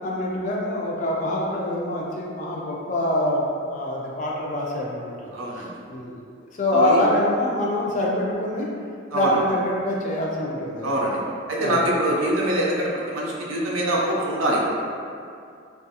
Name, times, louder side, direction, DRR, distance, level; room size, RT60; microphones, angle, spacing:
voice 1, 0.0-5.3 5.9-6.2 6.6-8.7 9.1-10.9 11.6-11.8, left 1 dB, 40° left, -3 dB, 0.3 m, -25 dB
voice 2, 5.3-5.7 6.7-7.0 9.1-9.4 10.8-11.2 11.5-14.6, right 1 dB, 85° right, -4 dB, 0.5 m, -24 dB
2.3 x 2.3 x 2.7 m, 2.4 s
head